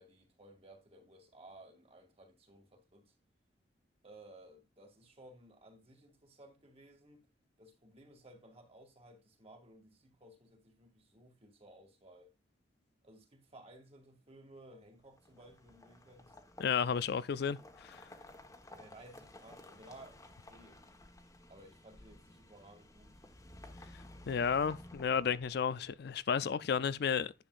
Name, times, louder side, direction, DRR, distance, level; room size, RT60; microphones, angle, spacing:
voice 1, 0.0-3.1 4.0-7.3 7.6-12.3 13.0-16.4 18.7-20.2 20.5-20.8 21.5-23.2, right 1 dB, 35° right, 2.2 m, -57 dB
sound 1, 15.1-25.9, left 1 dB, 20° left, 1.2 m, -55 dB
voice 2, 16.6-18.0 24.3-27.3, left 6 dB, 65° left, 0.4 m, -32 dB
10.5 x 7.1 x 2.5 m
head